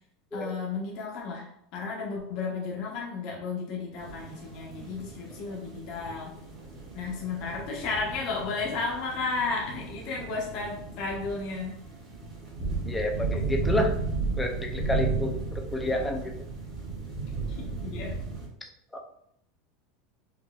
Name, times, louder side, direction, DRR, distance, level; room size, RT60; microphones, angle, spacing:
voice 1, 0.3-6.3 6.9-11.8 17.4-18.2, left 4 dB, 50° left, -2 dB, 0.8 m, -33 dB
sound 1, 4.0-18.5, right 3 dB, 30° right, 1.4 m, -34 dB
voice 2, 12.9-13.9 14.4-16.3, left 1 dB, 10° left, 2 dB, 0.4 m, -29 dB
4.9 x 2.6 x 2.4 m, 0.73 s
supercardioid pair, 165°, 0 cm